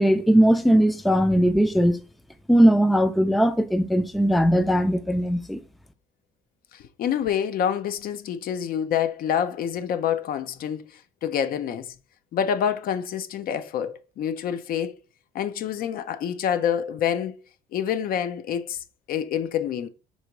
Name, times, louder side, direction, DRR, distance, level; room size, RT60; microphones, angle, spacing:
voice 1, 0.0-2.0 2.5-5.6, equal, ahead, 0.4 m, -19 dB
voice 2, 6.7-10.8 11.2-11.9 12.3-15.0 15.3-17.4 17.7-18.8 19.1-19.9, left 8 dB, 60° left, 0.6 m, -27 dB
4.0 x 2.9 x 4.6 m
cardioid pair, 110°, 17 cm